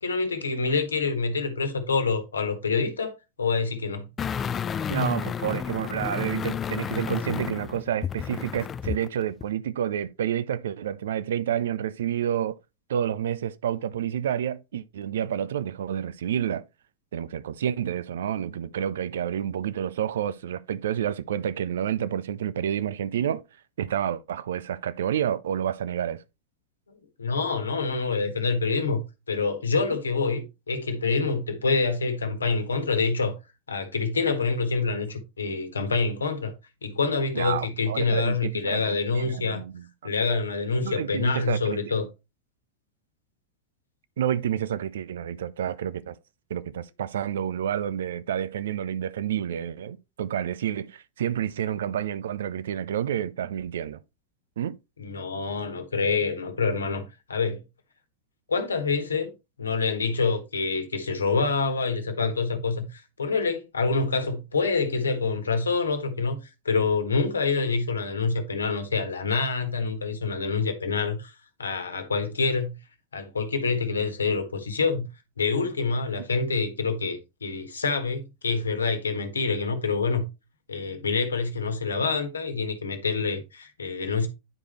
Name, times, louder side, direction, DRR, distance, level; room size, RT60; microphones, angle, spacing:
voice 1, 0.0-4.1 26.9-29.0 29.3-33.3 33.7-36.5 36.8-39.6 40.0-42.0 55.0-57.6 58.5-59.3 59.6-66.4 66.6-71.3 71.6-72.8 73.1-75.1 75.4-80.2 80.7-84.3, left 4 dB, 75° left, 1.3 m, -26 dB
sound 1, 4.2-9.1 9.4-9.5, left 7 dB, 25° left, 0.3 m, -31 dB
voice 2, 4.9-12.6 12.9-16.7 17.1-23.4 23.8-26.2 37.3-39.8 40.8-42.1 44.2-46.1 46.5-54.0 54.6-54.8, right 9 dB, 60° right, 0.5 m, -29 dB
9.7 x 4.9 x 3.0 m
figure-of-eight pair, 90°, 0 cm